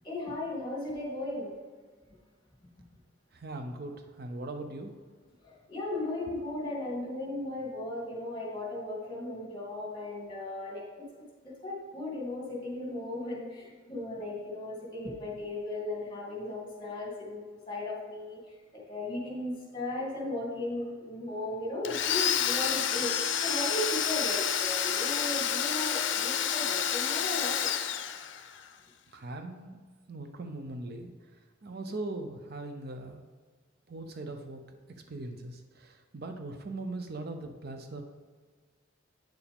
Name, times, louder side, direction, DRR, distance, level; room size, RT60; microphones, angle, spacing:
voice 1, 0.0-1.5 5.4-11.1 11.4-18.4 18.9-23.1 23.4-27.7, left 1 dB, 25° left, -4 dB, 2.5 m, -36 dB
voice 2, 3.3-4.9 29.1-29.8 30.1-33.2 33.9-34.6 35.1-38.0, right 2 dB, 55° right, 6 dB, 0.6 m, -40 dB
Domestic sounds home sounds, 21.8-28.6, left 9 dB, 65° left, 0.5 m, -29 dB
9.2 x 7.1 x 3.5 m, 1.5 s
head